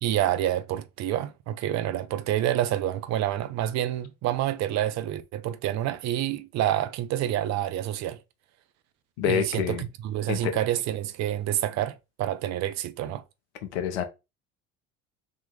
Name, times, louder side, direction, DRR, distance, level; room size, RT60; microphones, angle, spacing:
voice 1, 0.0-8.2 9.2-13.2, right 12 dB, 55° right, 0.7 m, -28 dB
voice 2, 9.2-9.8 10.3-10.5 13.7-14.0, left 8 dB, 80° left, 1.0 m, -27 dB
3.6 x 2.9 x 3.8 m
hypercardioid pair, 65°, 33 cm